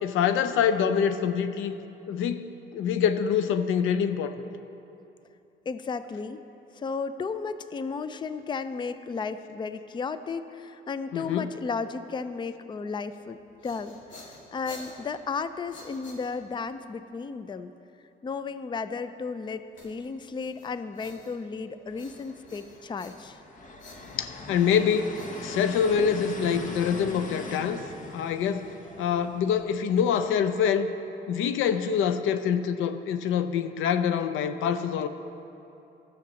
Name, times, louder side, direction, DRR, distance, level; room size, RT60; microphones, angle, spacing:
voice 1, 0.0-1.7 2.1-2.5 2.7-4.4 11.1-11.5 24.1-25.0 25.4-28.7 29.0-30.9 31.3-35.1, left 7 dB, 90° left, 10 dB, 0.5 m, -25 dB
voice 2, 5.7-6.4 6.7-17.7 18.2-23.4, left 5 dB, 25° left, 12 dB, 0.4 m, -34 dB
sound 1, 13.4-16.7 19.8-21.6 21.9-23.5 23.8-26.0, left 2 dB, 75° left, 2.1 m, -50 dB
sound 2, 21.9-30.6, left 2 dB, 40° left, 1.1 m, -42 dB
11.5 x 6.5 x 7.0 m, 2.9 s
cardioid pair, 90°, 20 cm